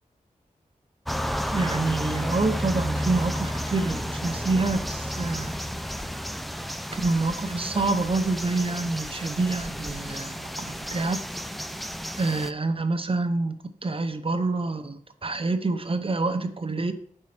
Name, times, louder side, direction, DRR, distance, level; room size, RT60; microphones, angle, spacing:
sound 1, 1.1-12.5, equal, ahead, 0.3 m, -32 dB
voice 1, 1.5-5.5 6.9-11.2 12.2-13.5 13.8-16.9, right 3 dB, 40° right, 8 dB, 0.7 m, -27 dB
5.4 x 4.3 x 5.8 m, 0.63 s
wide cardioid pair, 70°, 14 cm